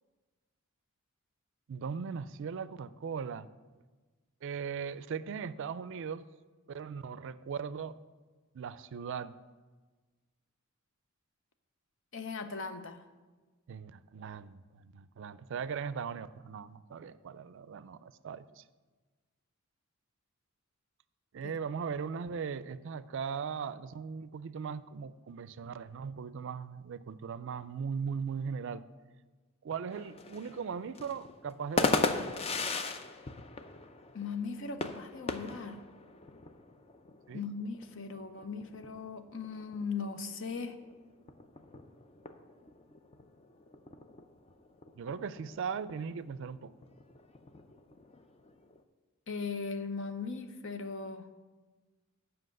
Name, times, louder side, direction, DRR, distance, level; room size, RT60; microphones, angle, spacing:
voice 1, 1.7-3.5 4.4-6.3 6.7-8.0 8.5-9.4 13.7-18.6 21.3-28.8 29.6-32.1 37.3-37.4 45.0-46.7, right 6 dB, 60° right, 15 dB, 0.4 m, -39 dB
voice 2, 12.1-13.0 21.4-21.5 34.1-35.8 37.3-40.8 49.3-51.3, left 4 dB, 65° left, 8 dB, 0.7 m, -38 dB
sound 1, 29.9-48.8, left 3 dB, 30° left, 0.5 m, -39 dB
7.6 x 5.7 x 7.7 m, 1.3 s
head